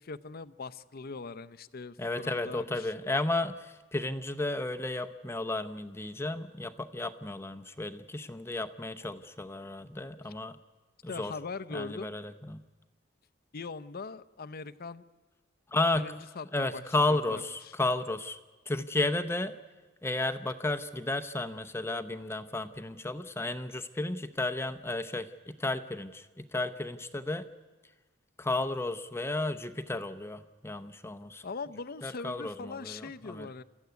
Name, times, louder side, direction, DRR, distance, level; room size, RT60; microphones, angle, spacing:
voice 1, 0.0-3.1 11.1-12.2 13.5-15.0 15.9-16.8 17.3-17.7 31.4-33.6, left 4 dB, 50° left, 13 dB, 0.7 m, -41 dB
voice 2, 2.0-10.6 11.0-11.3 11.7-12.6 15.7-16.1 16.5-18.4 18.7-19.6 20.0-27.5 28.4-31.5 32.0-33.5, left 2 dB, 10° left, 8 dB, 0.7 m, -33 dB
28.5 x 14.5 x 9.4 m, 1.3 s
head